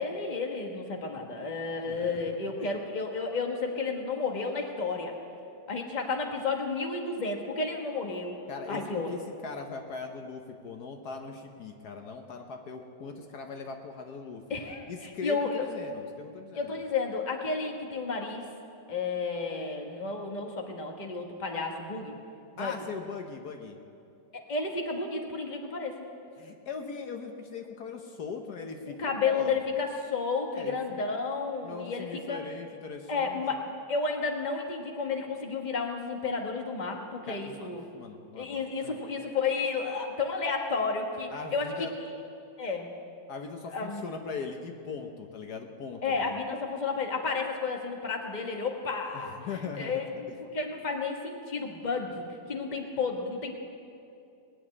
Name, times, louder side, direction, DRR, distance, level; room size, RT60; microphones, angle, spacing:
voice 1, 0.0-5.1 5.7-8.4 8.7-9.1 14.5-15.6 16.5-18.4 18.9-22.1 22.5-22.7 24.3-25.9 28.9-32.4 33.1-33.6 33.9-37.9 38.4-41.7 42.6-42.9 43.7-44.0 46.0-49.3 49.8-50.3 50.5-53.5, left 4 dB, 30° left, 2 dB, 1.4 m, -32 dB
voice 2, 1.9-2.3 2.6-2.7 8.5-14.4 14.9-16.8 22.6-23.8 26.4-29.6 30.5-31.1 31.6-33.6 37.3-37.7 37.9-39.0 41.3-41.9 43.3-46.4 49.1-50.0, left 5 dB, 70° left, 4 dB, 1.5 m, -40 dB
20.0 x 7.1 x 9.7 m, 2.6 s
omnidirectional pair, 1.8 m